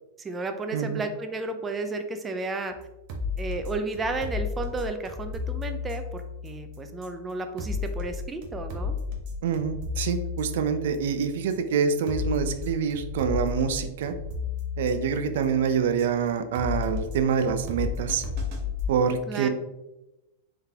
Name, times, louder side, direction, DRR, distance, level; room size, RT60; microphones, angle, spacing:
voice 1, 0.2-2.8 3.4-9.0 19.3-19.5, right 3 dB, 15° right, 7 dB, 0.4 m, -33 dB
sound 1, 2.7-18.9, left 5 dB, 50° right, 0.8 m, -34 dB
voice 2, 9.4-14.1 14.8-18.2 18.9-19.5, right 6 dB, 70° right, 8 dB, 0.5 m, -26 dB
3.7 x 3.5 x 2.8 m, 0.98 s
supercardioid pair, 130°, 0 cm